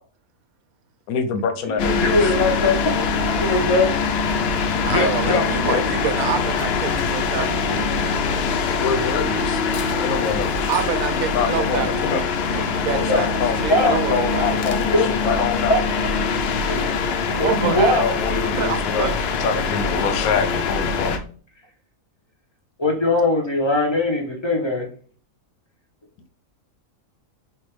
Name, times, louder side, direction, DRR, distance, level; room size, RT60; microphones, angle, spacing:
voice 1, 1.1-2.3 4.8-5.8 8.7-9.6 10.0-10.5 11.3-12.2 12.9-15.8 17.7-19.1 19.4-21.2, left 6 dB, 85° left, 1.1 m, -25 dB
voice 2, 1.7-3.9 12.5-12.8 13.1-13.2 13.7-13.9 14.9-16.0 16.7-17.0 17.3-18.0 22.8-24.9, left 1 dB, 25° left, 0.6 m, -21 dB
sound 1, 1.8-21.2, left 5 dB, 65° left, 0.6 m, -23 dB
voice 3, 4.8-7.9 10.7-12.2 12.5-13.3 13.5-14.6 17.4-17.9 18.6-19.1, right 8 dB, 80° right, 1.0 m, -27 dB
4.5 x 2.3 x 3.1 m
omnidirectional pair, 1.5 m